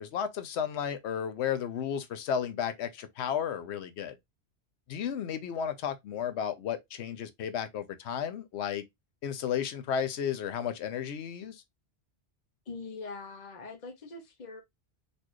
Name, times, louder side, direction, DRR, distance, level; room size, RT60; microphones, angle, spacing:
voice 1, 0.0-4.1 4.9-8.8 9.2-11.6, left 8 dB, 85° left, 0.9 m, -33 dB
voice 2, 12.7-14.6, left 3 dB, 45° left, 0.8 m, -42 dB
4.2 x 2.6 x 2.9 m
omnidirectional pair, 1.1 m